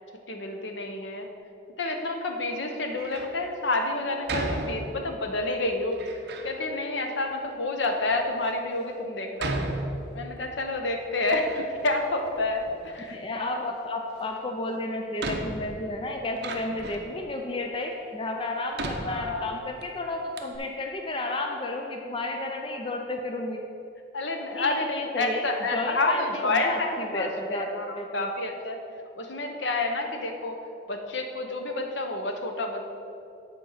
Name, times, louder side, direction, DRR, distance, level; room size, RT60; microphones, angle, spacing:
voice 1, 0.3-1.3 1.8-6.0 6.4-9.5 10.1-13.2 19.0-19.4 24.1-28.8 29.2-30.6 30.9-32.9, left 2 dB, 70° left, 4 dB, 0.9 m, -29 dB
Door, 2.9-3.4 4.3-5.2 5.9-6.5 7.3-7.4 8.1-8.2 9.4-10.5 10.9-11.9 12.2-13.1 14.4-14.5 15.2-17.2 17.8-17.9 18.7-19.8 20.1-20.2 20.4-20.6, right 2 dB, 55° right, 0.7 m, -35 dB
voice 2, 13.1-23.6 24.5-25.5 25.7-28.3, left 2 dB, 25° left, 2 dB, 0.4 m, -32 dB
8.7 x 4.4 x 6.5 m, 2.7 s
head